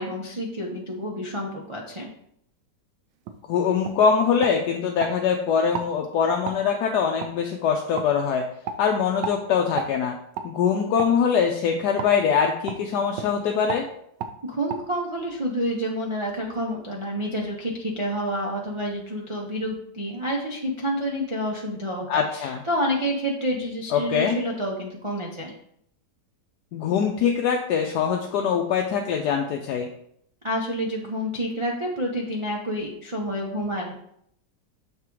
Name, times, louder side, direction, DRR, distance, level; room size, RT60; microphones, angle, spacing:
voice 1, 0.0-2.1 14.4-25.5 30.4-33.9, equal, 45° right, -3 dB, 0.3 m, -29 dB
sound 1, 3.2-3.4 3.8-4.0 4.4-5.1 5.7-5.9 6.4-6.6 7.2-7.3 8.0-8.1 8.6-8.8 9.2-9.4 9.8-9.9 10.3-10.5 11.0-11.1 12.0-12.1 12.7-12.8 13.1-13.3 13.7-13.8 14.2-14.3 14.7-14.8, right 6 dB, 85° right, 1.3 m, -32 dB
voice 2, 3.5-8.4 8.8-10.1 10.4-13.8 22.1-22.6 23.9-24.4 26.7-29.9, left 6 dB, 75° left, 2 dB, 1.1 m, -23 dB
6.6 x 3.6 x 4.6 m, 0.71 s
omnidirectional pair, 1.9 m